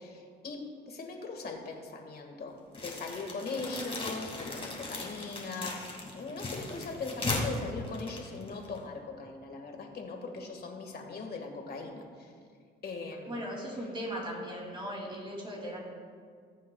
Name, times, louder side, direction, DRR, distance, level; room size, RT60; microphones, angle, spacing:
voice 1, 0.0-5.8 6.1-12.3 12.8-13.4, left 3 dB, 50° left, 3 dB, 1.8 m, -40 dB
sound 1, 2.7-8.8, left 2 dB, 30° left, 2.4 m, -37 dB
voice 2, 13.3-15.8, equal, 25° right, -3 dB, 2.7 m, -38 dB
20.5 x 7.3 x 2.3 m, 2.1 s
cardioid pair, 90°, 20 cm